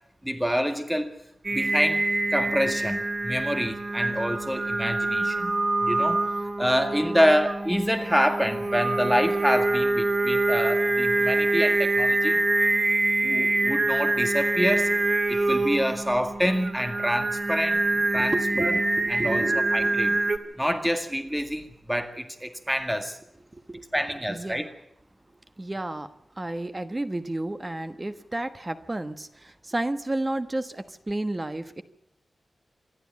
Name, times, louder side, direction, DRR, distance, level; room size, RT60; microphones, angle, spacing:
voice 1, 0.2-1.1 1.5-2.0 2.3-5.6 5.8-6.2 6.6-12.4 13.2-14.9 15.3-17.8 18.1-18.8 19.1-19.4 19.7-20.2 20.6-23.2 23.9-24.7, equal, 5° right, 7 dB, 2.0 m, -26 dB
Singing, 1.4-20.4, right 2 dB, 40° right, 1.9 m, -25 dB
voice 2, 18.1-20.2 20.5-20.6 23.5-23.8 24.3-24.7 25.6-26.1 26.4-31.8, right 2 dB, 20° right, 10 dB, 1.3 m, -32 dB
26.5 x 12.0 x 8.5 m, 0.81 s
wide cardioid pair, 145°, 0 cm